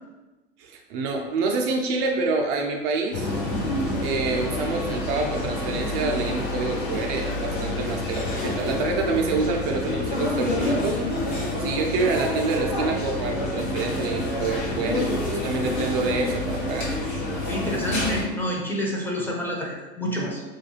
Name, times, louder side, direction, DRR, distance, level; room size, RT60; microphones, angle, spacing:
voice 1, 0.6-3.3 4.0-11.0 11.6-16.9, right 3 dB, 50° right, 2 dB, 0.4 m, -27 dB
sound 1, 3.1-18.2, left 2 dB, 80° left, 0.9 m, -28 dB
voice 2, 17.5-20.4, equal, 5° left, -3 dB, 0.5 m, -28 dB
2.4 x 2.2 x 3.1 m, 1.1 s
hypercardioid pair, 85°, 32 cm